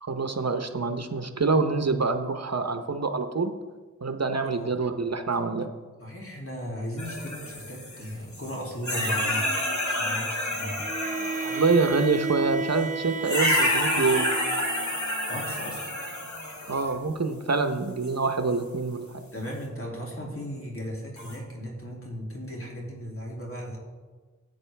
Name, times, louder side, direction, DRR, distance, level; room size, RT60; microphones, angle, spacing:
voice 1, 0.0-3.5 4.0-5.7 11.4-14.3 16.7-19.2, right 4 dB, 55° right, 7 dB, 0.8 m, -26 dB
voice 2, 6.0-9.5 9.8-10.9 15.3-15.9 19.3-23.8, equal, 45° left, -3 dB, 2.7 m, -36 dB
sound 1, 7.0-8.6 8.8-12.2 13.2-16.9 18.0-18.1 21.2-21.4, left 1 dB, 60° left, 2.4 m, -29 dB
Bowed string instrument, 10.8-15.1, right 4 dB, 25° right, 0.4 m, -33 dB
14.5 x 9.3 x 3.4 m, 1.4 s
wide cardioid pair, 60°, 32 cm